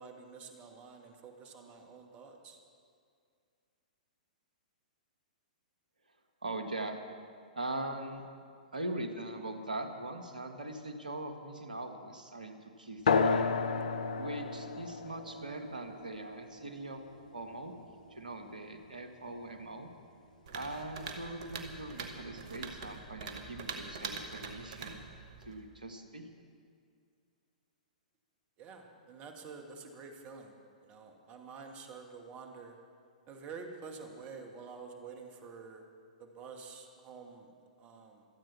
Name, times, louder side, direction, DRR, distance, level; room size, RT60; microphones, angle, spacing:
voice 1, 0.0-2.6 28.6-30.5 30.8-32.8 33.3-35.8 36.2-37.5 37.8-38.3, right 5 dB, 30° right, 3 dB, 2.3 m, -48 dB
voice 2, 6.4-7.0 7.6-8.2 8.7-13.5 14.2-17.0 17.3-17.7 18.1-19.9 20.5-25.1 25.5-26.3, right 2 dB, 85° right, 6 dB, 1.6 m, -41 dB
sound 1, 13.1-18.1, left 5 dB, 65° left, 0.8 m, -33 dB
sound 2, 20.5-25.6, right 4 dB, 55° right, 1.9 m, -44 dB
26.0 x 9.1 x 6.0 m, 2.3 s
figure-of-eight pair, 115°, 4 cm